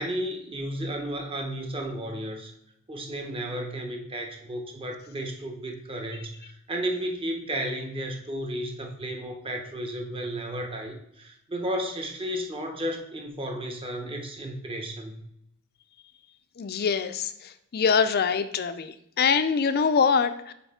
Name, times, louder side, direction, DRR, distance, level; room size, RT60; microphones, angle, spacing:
voice 1, 0.0-2.5 2.9-15.2, right 1 dB, 25° right, 2 dB, 1.0 m, -33 dB
voice 2, 16.6-17.3 17.7-20.5, left 6 dB, 45° left, 11 dB, 0.4 m, -24 dB
5.7 x 5.1 x 4.2 m, 0.76 s
head